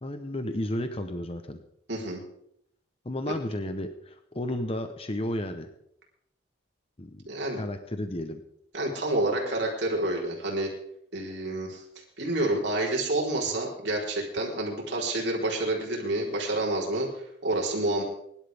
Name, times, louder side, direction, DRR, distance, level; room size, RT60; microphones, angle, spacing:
voice 1, 0.0-1.6 3.0-5.7 7.0-7.2 7.5-8.4, left 1 dB, 30° left, 7 dB, 1.0 m, -33 dB
voice 2, 1.9-2.2 7.3-7.6 8.7-10.7 11.1-11.8 12.2-18.0, right 2 dB, 65° right, -2 dB, 4.2 m, -28 dB
24.0 x 12.0 x 3.6 m, 0.74 s
head